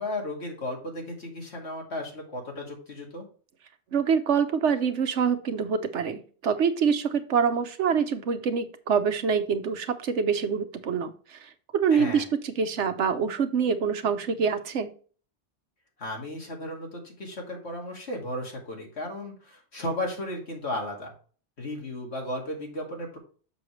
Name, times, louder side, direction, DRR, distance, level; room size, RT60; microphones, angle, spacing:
voice 1, 0.0-3.3 11.9-12.3 16.0-21.1 21.6-23.2, left 1 dB, 70° left, 0 dB, 2.5 m, -35 dB
voice 2, 3.9-14.9, right 6 dB, 85° right, 9 dB, 1.2 m, -25 dB
6.8 x 6.4 x 3.1 m, 0.40 s
omnidirectional pair, 1.2 m